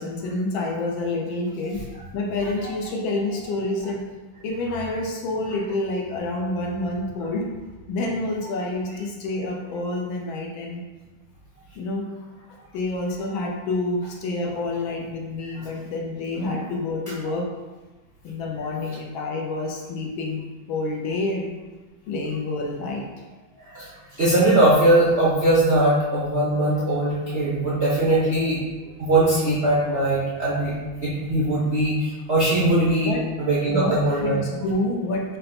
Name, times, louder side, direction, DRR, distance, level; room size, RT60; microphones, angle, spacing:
voice 1, 0.0-1.8 2.1-4.0 4.4-7.5 7.9-10.8 11.8-12.0 12.7-17.5 18.2-21.6 22.1-23.0 33.0-33.2 33.7-35.4, left 2 dB, 75° left, 0 dB, 1.4 m, -28 dB
voice 2, 24.2-28.6 29.0-30.7 31.0-34.4, right 1 dB, 60° right, -8 dB, 0.6 m, -20 dB
5.4 x 2.1 x 4.2 m, 1.2 s
omnidirectional pair, 2.3 m